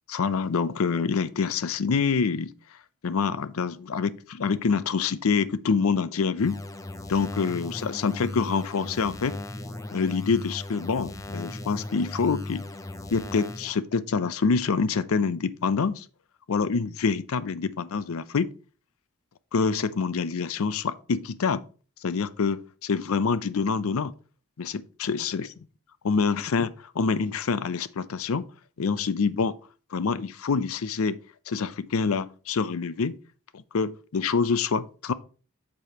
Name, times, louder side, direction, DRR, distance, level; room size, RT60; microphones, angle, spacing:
voice 1, 0.1-2.5 3.0-6.6 7.1-9.4 9.9-12.7 13.1-16.1 16.5-18.5 19.5-21.6 22.0-24.1 24.6-25.5 26.0-28.5 28.8-29.5 29.9-31.2 31.5-33.2 33.5-35.1, left 5 dB, 75° left, 0.5 m, -26 dB
sound 1, 6.4-13.8, left 2 dB, 15° left, 0.5 m, -37 dB
8.0 x 6.9 x 2.8 m
head